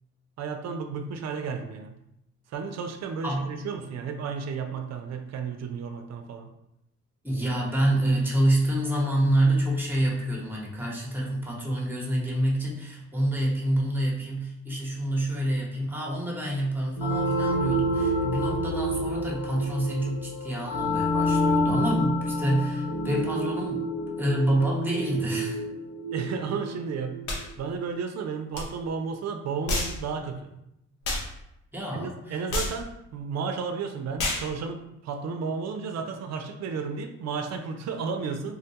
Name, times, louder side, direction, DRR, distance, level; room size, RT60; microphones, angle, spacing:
voice 1, 0.4-1.9 2.5-6.5 26.1-27.2 27.6-30.5 31.9-38.5, right 5 dB, 60° right, 5 dB, 0.5 m, -33 dB
voice 2, 7.2-23.8 24.2-25.6 31.7-32.4, right 1 dB, 5° right, -3 dB, 0.9 m, -27 dB
sound 1, 17.0-27.4, equal, 45° left, 0.6 m, -28 dB
sound 2, 27.3-27.4 28.5-28.7 29.7-30.0 31.0-31.3 32.5-32.8 34.2-34.5, left 2 dB, 90° left, 0.7 m, -28 dB
3.8 x 2.1 x 2.8 m, 0.82 s
cardioid pair, 95°, 30 cm